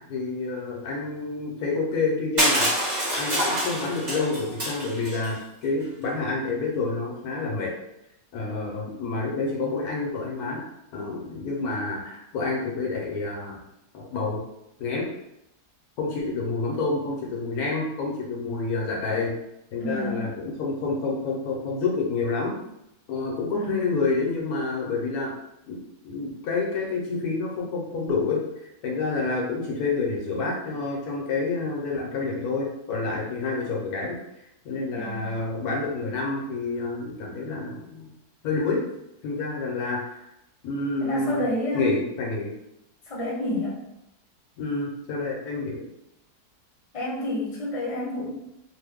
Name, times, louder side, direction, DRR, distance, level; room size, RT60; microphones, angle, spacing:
voice 1, 0.1-7.7 8.3-10.6 10.9-13.6 13.9-14.4 14.8-15.1 16.0-19.3 19.7-22.6 23.1-25.3 25.7-28.4 28.8-34.2 34.6-38.1 38.4-38.8 39.2-40.2 40.6-41.5 41.7-42.5 44.6-45.8, left 3 dB, 70° left, -2 dB, 1.1 m, -28 dB
Crushing, 2.4-5.3, equal, 30° right, 1.2 m, -26 dB
voice 2, 19.8-20.3 23.5-23.8 34.9-35.3 41.0-41.9 43.1-43.8 46.9-48.3, left 1 dB, 25° left, -6 dB, 0.8 m, -29 dB
2.9 x 2.1 x 3.4 m, 0.84 s
omnidirectional pair, 1.7 m